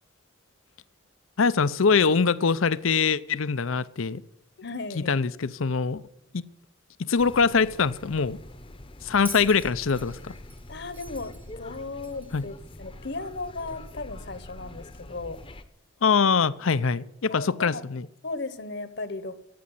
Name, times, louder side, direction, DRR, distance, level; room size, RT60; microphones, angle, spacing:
voice 1, 1.4-4.2 5.0-6.0 6.3-6.4 7.0-8.4 9.0-10.3 12.3-12.5 16.0-18.1, left 5 dB, 75° left, 17 dB, 0.6 m, -23 dB
voice 2, 4.6-5.1 10.7-15.4 17.3-17.8 18.2-19.4, left 3 dB, 55° left, 12 dB, 1.0 m, -36 dB
sound 1, 7.2-15.6, left 1 dB, 25° left, 0.8 m, -44 dB
Bell, 9.2-12.4 13.6-13.7, right 3 dB, 10° right, 0.7 m, -44 dB
14.0 x 8.6 x 9.6 m, 0.78 s
head